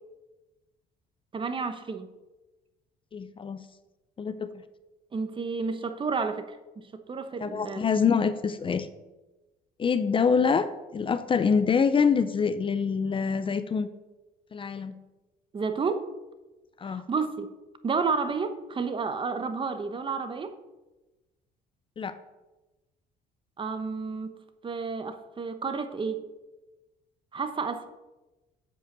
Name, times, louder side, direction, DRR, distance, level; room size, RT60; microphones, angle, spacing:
voice 1, 1.3-2.1 5.1-7.9 15.5-16.1 16.8-17.5 17.8-20.6 23.6-24.3 24.6-26.2 27.3-27.9, right 4 dB, 30° right, 9 dB, 1.0 m, -31 dB
voice 2, 3.1-3.6 4.2-4.5 7.4-8.9 9.8-13.9 14.5-14.9 16.8-17.0 22.0-22.2, left 6 dB, 30° left, 12 dB, 0.6 m, -25 dB
7.9 x 7.8 x 6.7 m, 1.1 s
cardioid pair, 110°, 17 cm